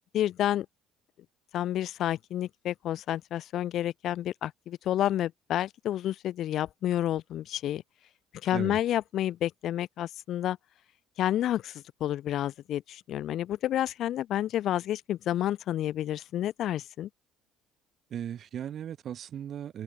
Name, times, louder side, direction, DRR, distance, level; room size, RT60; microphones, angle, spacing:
voice 1, 0.1-0.7 1.5-7.8 8.4-10.6 11.2-17.1, left 12 dB, 60° left, 0.4 m, -30 dB
voice 2, 18.1-19.8, right 9 dB, 50° right, 2.1 m, -37 dB
open air
hypercardioid pair, 60°, 0 cm